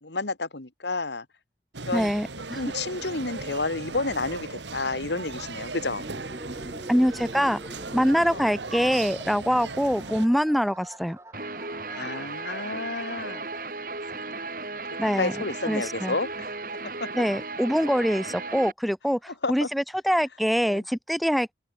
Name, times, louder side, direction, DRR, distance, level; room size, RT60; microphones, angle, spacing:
voice 1, 0.0-1.3 1.9-2.1 2.5-6.0 8.3-8.5 11.9-13.4 14.1-14.2 15.2-16.5 17.0-17.1 19.4-19.7 20.6-20.8, left 3 dB, 80° left, 2.2 m, -30 dB
sound 1, 1.7-10.3, right 3 dB, 90° right, 2.1 m, -37 dB
voice 2, 1.9-2.6 6.9-7.6 7.9-11.2 15.0-15.3 15.7-16.1 17.2-21.5, equal, ahead, 0.5 m, -24 dB
sound 2, 6.0-13.7, right 1 dB, 15° right, 2.5 m, -45 dB
Guitar, 11.3-18.7, right 3 dB, 50° right, 7.0 m, -35 dB
open air
head